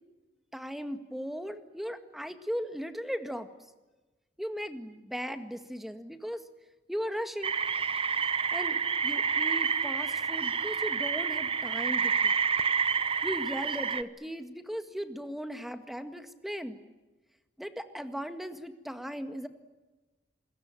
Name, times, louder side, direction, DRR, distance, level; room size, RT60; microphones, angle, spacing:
voice 1, 0.5-3.5 4.4-6.4 6.9-7.5 8.5-12.3 13.2-16.8 17.6-19.5, equal, ahead, 9 dB, 1.9 m, -37 dB
sound 1, 7.4-14.0, right 6 dB, 30° right, 1.0 m, -29 dB
27.0 x 22.0 x 9.1 m, 1.2 s
head